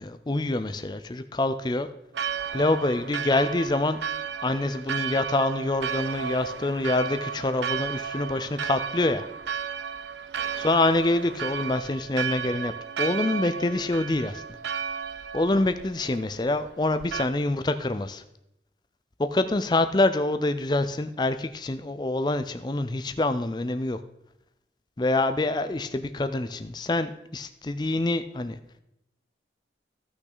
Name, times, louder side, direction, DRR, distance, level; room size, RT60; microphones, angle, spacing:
voice 1, 0.0-1.9 2.5-4.0 4.4-9.3 10.6-12.7 13.0-14.4 15.3-18.2 19.2-24.0 25.0-28.6, left 2 dB, 25° left, 10 dB, 0.4 m, -26 dB
Church bell, 2.1-17.3, right 7 dB, 85° right, 0.5 m, -33 dB
15.5 x 6.0 x 4.0 m, 0.84 s
head